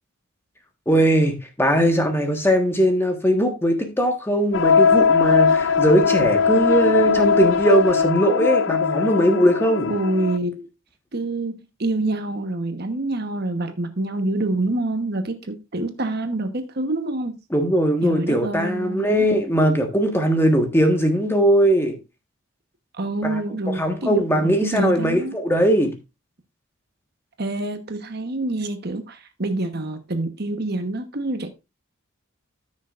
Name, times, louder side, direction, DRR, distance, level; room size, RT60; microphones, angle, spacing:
voice 1, 0.9-9.9 17.5-22.0 23.2-23.4 23.7-25.9, right 1 dB, 10° left, 1.4 m, -20 dB
sound 1, 4.5-10.4, left 5 dB, 65° left, 0.5 m, -19 dB
voice 2, 9.9-10.7 11.1-17.4 18.0-19.3 22.9-25.3 27.4-31.5, right 2 dB, 50° right, 1.1 m, -26 dB
14.0 x 6.4 x 2.5 m
head